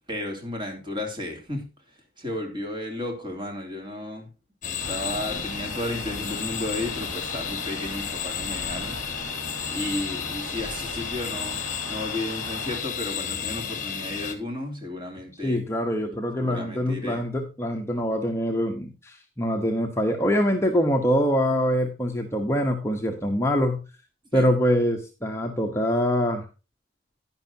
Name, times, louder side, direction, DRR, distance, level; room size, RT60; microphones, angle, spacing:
voice 1, 0.1-1.6 2.2-4.3 4.6-9.0 9.7-15.6 16.4-17.2 24.3-24.5, left 1 dB, 25° right, 2 dB, 2.9 m, -33 dB
sound 1, 4.6-14.3, left 8 dB, 40° left, 1.6 m, -32 dB
Thunder, 4.8-12.8, right 1 dB, 80° right, 2.2 m, -39 dB
voice 2, 15.3-23.8 24.3-26.4, equal, 15° left, 2 dB, 1.0 m, -24 dB
11.0 x 10.5 x 2.8 m, 0.30 s
head